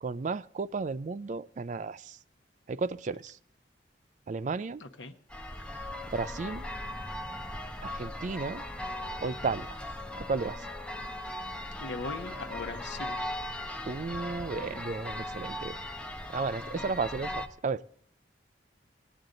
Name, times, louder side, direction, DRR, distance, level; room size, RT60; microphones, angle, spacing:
voice 1, 0.0-2.2 2.7-3.4 4.3-4.8 6.1-6.6 7.8-8.6 9.2-9.8 10.2-10.7 13.9-15.8 16.3-17.8, right 4 dB, 45° right, 15 dB, 0.4 m, -33 dB
voice 2, 4.8-5.1 11.8-13.2, left 3 dB, 90° left, 4 dB, 0.9 m, -39 dB
sound 1, 5.3-17.5, left 1 dB, 5° left, 0.9 m, -38 dB
18.5 x 9.2 x 3.9 m, 0.63 s
head